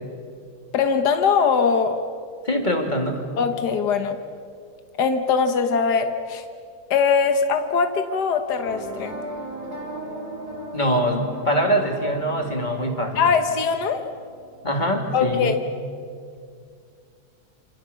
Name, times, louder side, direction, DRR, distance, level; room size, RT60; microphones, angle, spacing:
voice 1, 0.7-2.0 3.4-4.2 5.0-6.4 6.9-9.2 13.2-14.0 15.1-15.6, left 5 dB, 80° left, 7 dB, 1.8 m, -21 dB
voice 2, 2.4-3.3 10.7-13.2 14.6-15.5, equal, 25° left, 3 dB, 3.0 m, -23 dB
sound 1, 8.6-14.9, right 1 dB, 70° right, 6.0 m, -37 dB
28.0 x 27.0 x 7.0 m, 2.3 s
omnidirectional pair, 1.7 m